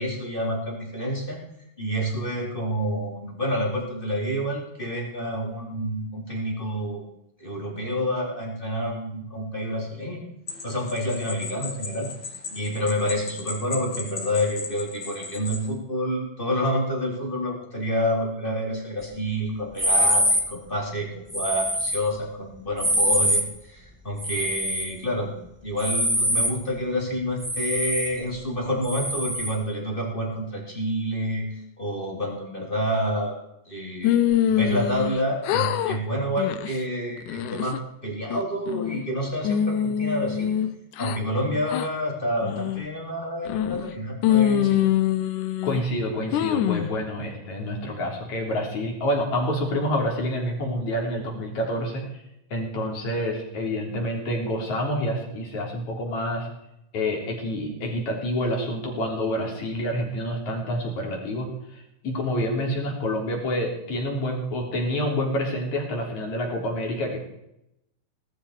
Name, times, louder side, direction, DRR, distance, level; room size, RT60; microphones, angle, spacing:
voice 1, 0.0-1.4 1.8-7.0 7.4-10.2 10.6-12.1 12.5-25.3 25.6-31.5 31.8-33.3 33.7-34.2 34.5-40.5 41.0-44.8, equal, 15° left, -1 dB, 3.5 m, -28 dB
sound 1, 10.5-15.7, left 4 dB, 35° left, 2.6 m, -37 dB
sound 2, 19.8-20.5 21.3-22.0 22.8-23.5 24.2-24.9 25.8-26.6 27.4-28.1 28.8-29.5, equal, 10° right, 0.6 m, -24 dB
sound 3, 34.0-35.2 35.4-36.0 36.4-36.7 37.2-37.8 38.3-39.1 39.4-41.2 41.7-41.9 42.4-42.9 43.5-43.9 44.2-45.8 46.3-46.9, left 10 dB, 70° left, 2.0 m, -24 dB
voice 2, 45.6-52.2 52.5-56.5 56.9-67.2, left 1 dB, 50° left, 0 dB, 4.9 m, -28 dB
18.5 x 14.0 x 4.9 m, 0.82 s
omnidirectional pair, 4.3 m